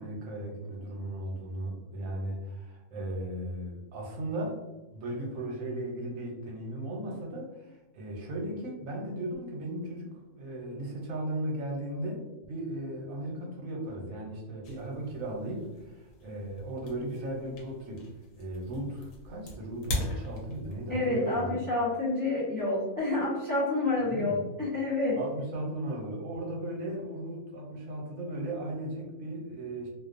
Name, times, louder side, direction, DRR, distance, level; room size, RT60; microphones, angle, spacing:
voice 1, 0.0-4.6 4.9-10.1 10.3-18.1 18.4-21.6 24.0-24.5 25.2-29.9, right 1 dB, 75° right, -1 dB, 1.1 m, -36 dB
sound 1, 14.6-21.0, left 1 dB, 75° left, 1.0 m, -40 dB
voice 2, 20.9-25.2, left 2 dB, 25° left, -8 dB, 0.5 m, -28 dB
2.5 x 2.2 x 2.4 m, 1.1 s
omnidirectional pair, 1.4 m